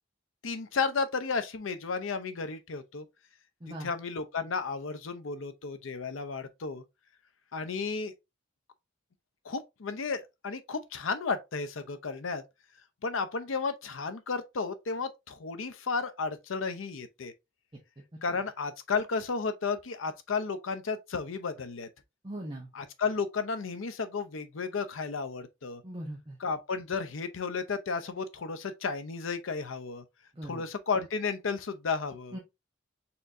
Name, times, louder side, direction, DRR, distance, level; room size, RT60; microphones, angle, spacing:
voice 1, 0.4-3.1 3.8-6.8 7.5-8.1 9.4-12.4 13.0-17.3 18.2-21.9 22.7-25.8 26.4-30.0 30.4-32.4, left 4 dB, 85° left, 0.6 m, -33 dB
voice 2, 22.2-22.7 25.8-26.4 30.4-30.6 32.3-32.4, right 1 dB, 25° right, 1.0 m, -39 dB
4.3 x 3.6 x 2.6 m
head